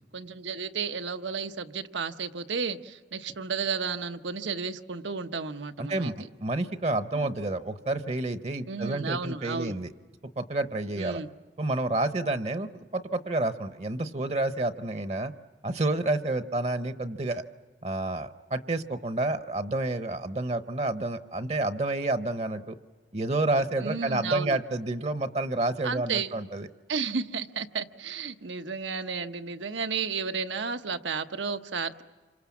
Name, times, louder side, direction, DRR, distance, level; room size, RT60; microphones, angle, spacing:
voice 1, 0.1-6.1 7.1-7.3 8.7-9.8 11.0-11.3 23.8-24.6 25.8-26.3 26.9-32.0, right 5 dB, 90° right, 9 dB, 1.0 m, -33 dB
voice 2, 5.8-9.9 10.4-11.2 11.6-15.3 15.6-17.4 17.8-22.7 23.1-26.7, right 2 dB, 35° right, 12 dB, 0.8 m, -29 dB
28.0 x 25.5 x 7.2 m, 1.4 s
head